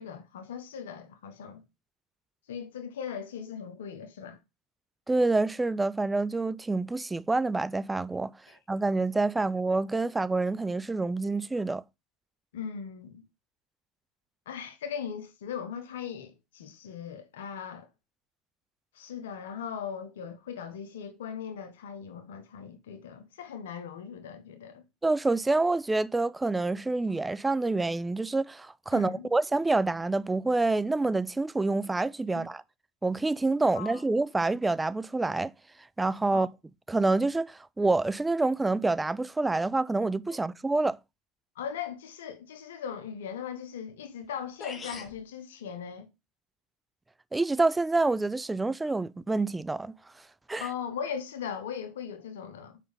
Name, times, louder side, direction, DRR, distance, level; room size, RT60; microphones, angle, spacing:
voice 1, 0.0-1.6 2.5-4.4 8.5-8.6 12.5-13.2 14.5-17.9 18.9-24.8 28.9-29.3 32.3-32.4 33.7-34.0 36.3-36.5 41.5-46.1 50.6-52.8, left 7 dB, 80° left, 1.2 m, -39 dB
voice 2, 5.1-8.3 8.7-11.8 25.0-32.6 33.0-35.5 36.0-36.5 36.9-41.0 47.3-49.9 50.5-50.7, right 3 dB, 10° right, 0.4 m, -27 dB
sound 1, 44.2-44.3 44.6-45.2, left 5 dB, 25° left, 1.4 m, -41 dB
5.3 x 4.7 x 5.1 m
hypercardioid pair, 90°, 0 cm